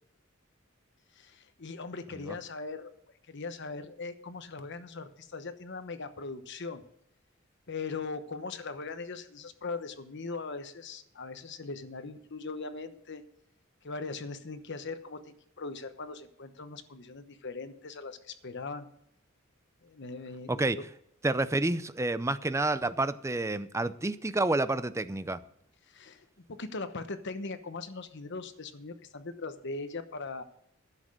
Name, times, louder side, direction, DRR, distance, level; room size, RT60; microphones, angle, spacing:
voice 1, 1.2-2.9 3.3-6.8 7.7-13.2 13.8-18.9 19.8-20.8 25.9-30.4, left 3 dB, 60° left, 1.0 m, -40 dB
voice 2, 21.2-25.4, right 2 dB, 15° right, 0.5 m, -29 dB
11.0 x 7.6 x 6.5 m
head